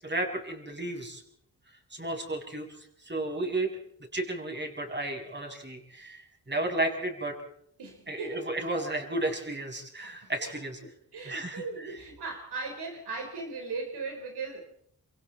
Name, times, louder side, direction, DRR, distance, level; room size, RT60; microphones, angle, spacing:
voice 1, 0.0-1.2 1.9-2.7 3.1-3.7 4.1-7.4 8.1-10.8 11.2-11.6, right 2 dB, 25° right, 2 dB, 7.5 m, -33 dB
voice 2, 7.8-8.5 10.0-10.5 10.8-14.6, right 4 dB, 85° right, 2 dB, 4.2 m, -38 dB
28.5 x 24.5 x 4.2 m, 0.67 s
cardioid pair, 45°, 39 cm